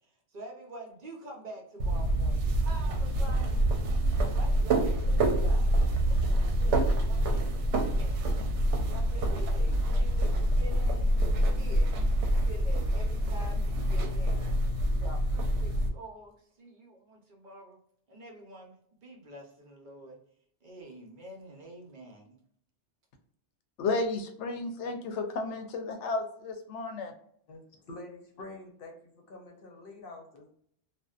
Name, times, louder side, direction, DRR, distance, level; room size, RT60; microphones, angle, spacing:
voice 1, 0.3-3.6 4.3-8.2 8.9-11.9 12.2-14.5 14.9-17.8 18.1-20.2 20.6-22.4, right 1 dB, 50° right, 0 dB, 0.7 m, -47 dB
sound 1, 1.8-15.9, right 1 dB, 80° right, 0.9 m, -26 dB
voice 2, 23.8-27.1, left 3 dB, 90° left, 6 dB, 0.9 m, -33 dB
voice 3, 27.5-30.5, left 2 dB, 60° left, 1 dB, 0.8 m, -47 dB
2.6 x 2.2 x 2.3 m, 0.65 s
omnidirectional pair, 1.2 m